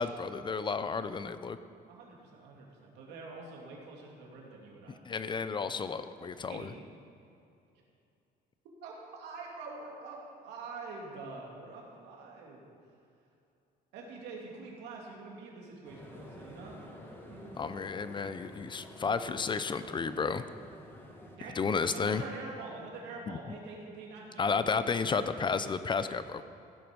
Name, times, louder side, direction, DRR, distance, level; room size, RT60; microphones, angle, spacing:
voice 1, 0.0-1.6 5.1-6.7 17.6-20.4 21.6-22.2 23.3-23.4 24.4-26.4, left 5 dB, 30° left, 12 dB, 0.5 m, -32 dB
voice 2, 1.9-5.0 6.5-6.7 8.8-12.7 13.9-16.8 17.3-17.5 21.4-21.6 21.9-25.5, right 3 dB, 85° right, -2 dB, 2.6 m, -45 dB
sound 1, 15.8-21.4, left 1 dB, 15° left, 1.6 m, -50 dB
15.5 x 7.7 x 5.3 m, 2.6 s
cardioid pair, 110°, 17 cm